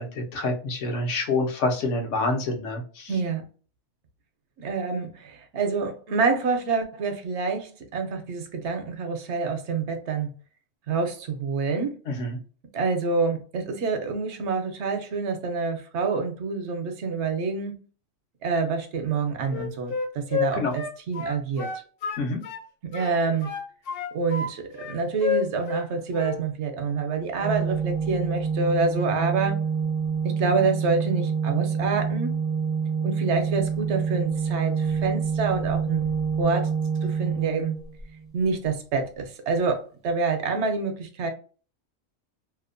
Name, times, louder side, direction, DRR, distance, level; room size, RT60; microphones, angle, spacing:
voice 1, 0.0-3.1 12.1-12.4 20.5-20.8 22.2-22.4, left 2 dB, 80° left, 1.0 m, -27 dB
voice 2, 3.1-3.4 4.6-10.3 10.9-12.0 12.7-17.8 18.4-21.7 22.8-23.5 24.1-29.6 30.2-32.4 33.0-36.0 36.4-36.7 37.0-37.8 38.3-41.3, right 4 dB, 70° right, 0.9 m, -27 dB
Wind instrument woodwind instrument, 19.5-22.7 22.9-24.5 24.8-25.9 26.1-26.4, left 6 dB, 60° left, 0.7 m, -30 dB
Organ, 27.4-38.3, right 6 dB, 40° right, 0.5 m, -27 dB
2.7 x 2.0 x 2.5 m
omnidirectional pair, 1.2 m